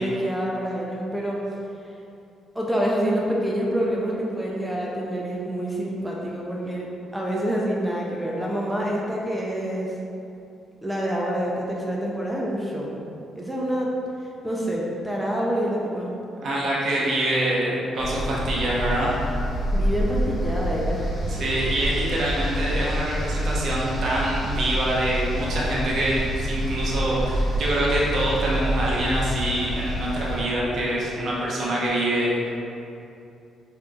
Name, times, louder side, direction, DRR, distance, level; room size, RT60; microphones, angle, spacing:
voice 1, 0.0-1.6 2.5-6.9 7.1-9.9 10.8-13.0 13.4-13.9 14.2-16.1 19.7-21.2, equal, 5° right, -3 dB, 0.5 m, -27 dB
voice 2, 16.4-19.1 21.3-32.3, right 1 dB, 60° right, -6 dB, 0.8 m, -25 dB
sound 1, 18.0-30.4, equal, 35° left, 1.1 m, -27 dB
4.7 x 3.1 x 2.3 m, 2.7 s
cardioid pair, 90°, 0 cm